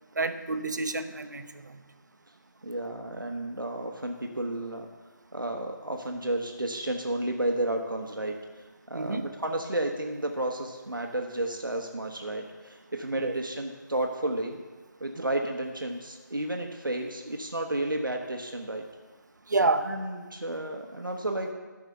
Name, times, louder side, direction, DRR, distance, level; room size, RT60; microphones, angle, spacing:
voice 1, 0.2-1.8 8.9-9.3 13.2-13.4 15.2-15.3 19.5-19.9, right 3 dB, 65° right, 9 dB, 0.8 m, -28 dB
voice 2, 2.6-4.9 5.3-14.6 15.0-18.8 19.9-21.5, right 1 dB, 90° right, 2 dB, 1.0 m, -32 dB
13.0 x 4.9 x 5.6 m, 1.3 s
figure-of-eight pair, 160°, 11 cm